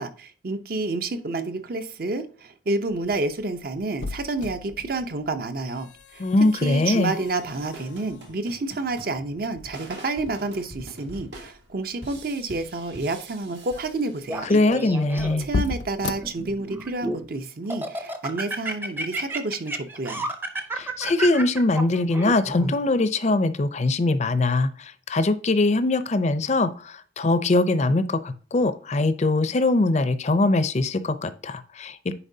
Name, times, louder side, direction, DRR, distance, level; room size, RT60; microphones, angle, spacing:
voice 1, 0.0-6.2 6.6-14.5 15.4-20.2, right 2 dB, 55° right, 0.7 m, -29 dB
sound 1, 2.9-17.0, left 3 dB, 85° left, 0.5 m, -37 dB
voice 2, 6.2-7.1 14.4-15.5 20.7-32.1, left 2 dB, 40° left, 0.5 m, -22 dB
sound 2, 7.2-14.6, right 1 dB, 80° right, 1.8 m, -45 dB
Laughter, 14.3-15.6 16.2-17.3 17.7-22.7, right 2 dB, 10° right, 0.6 m, -31 dB
10.0 x 4.4 x 2.7 m
head